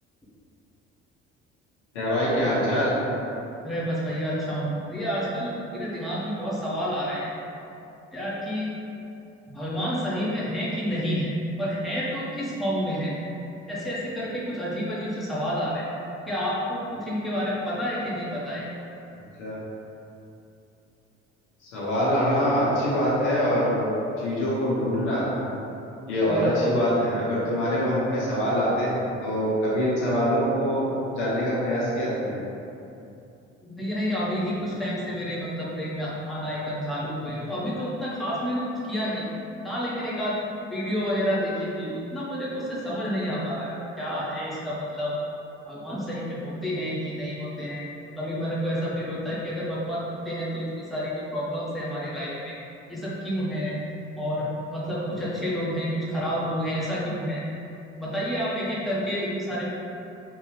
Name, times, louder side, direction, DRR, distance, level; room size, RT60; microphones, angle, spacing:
voice 1, 1.9-2.9 19.4-19.6 21.6-23.9 24.2-25.3 26.1-32.4, equal, 70° left, -7 dB, 1.0 m, -24 dB
voice 2, 3.6-7.3 8.1-8.7 9.5-11.3 11.6-13.1 13.7-15.9 16.3-18.7 26.2-26.5 33.6-39.3 39.6-40.4 40.7-45.1 45.6-47.9 48.2-52.5 52.9-53.8 54.2-57.4 58.0-59.7, equal, ahead, -8 dB, 1.0 m, -29 dB
3.6 x 2.7 x 3.1 m, 2.8 s
figure-of-eight pair, 55°, 36 cm